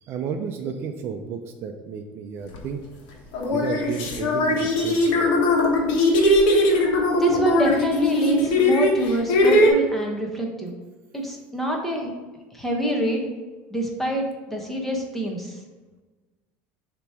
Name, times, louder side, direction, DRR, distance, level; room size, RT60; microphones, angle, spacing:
voice 1, 0.0-2.8 3.5-5.3, right 6 dB, 45° right, 5 dB, 0.5 m, -32 dB
sound 1, 2.5-2.7 3.3-9.7, left 1 dB, 75° left, 1.3 m, -20 dB
voice 2, 7.2-10.7 11.1-12.1 12.5-13.3 13.7-15.5, right 1 dB, 5° left, 0 dB, 1.1 m, -26 dB
6.8 x 3.0 x 4.8 m, 1.3 s
supercardioid pair, 135°, 5 cm